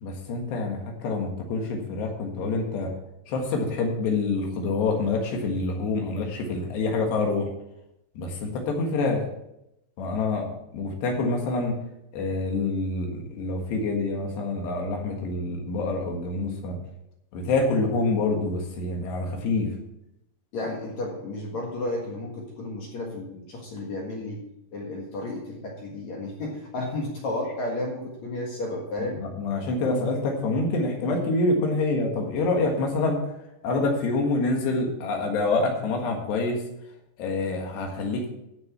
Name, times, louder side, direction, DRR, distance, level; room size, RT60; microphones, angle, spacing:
voice 1, 0.0-2.9 3.3-7.5 8.2-9.2 10.0-11.8 12.1-16.8 17.3-19.7 29.0-33.3 33.6-36.6 37.2-38.3, left 3 dB, 75° left, 2 dB, 3.7 m, -26 dB
voice 2, 20.5-24.4 24.7-29.2, left 2 dB, 55° left, -1 dB, 2.3 m, -32 dB
13.5 x 6.7 x 5.8 m, 0.84 s
omnidirectional pair, 5.1 m